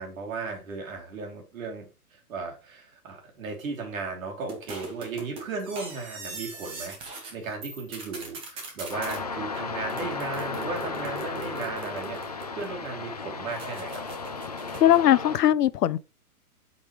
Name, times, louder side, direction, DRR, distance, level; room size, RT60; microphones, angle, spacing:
voice 1, 0.0-7.0 7.3-14.0, right 4 dB, 60° right, 3.1 m, -36 dB
sound 1, 4.5-7.3 7.6-9.2 9.9-12.9 13.5-15.0, right 3 dB, 10° right, 0.9 m, -41 dB
sound 2, 8.9-15.4, left 4 dB, 30° left, 0.4 m, -35 dB
voice 2, 14.8-16.0, left 12 dB, 80° left, 0.6 m, -20 dB
8.1 x 5.3 x 3.1 m
hypercardioid pair, 155°, 46 cm